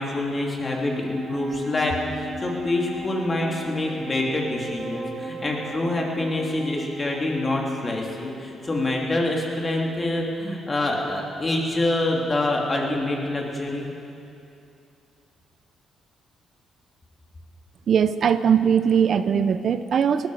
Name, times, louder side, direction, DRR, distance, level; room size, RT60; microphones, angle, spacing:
voice 1, 0.0-13.9, left 2 dB, 30° left, -1 dB, 2.8 m, -26 dB
Wind instrument woodwind instrument, 0.6-10.1, equal, 40° right, 3.5 m, -38 dB
voice 2, 17.9-20.3, right 7 dB, 60° right, 12 dB, 0.5 m, -20 dB
19.0 x 13.5 x 5.0 m, 2.6 s
cardioid pair, 90°, 0 cm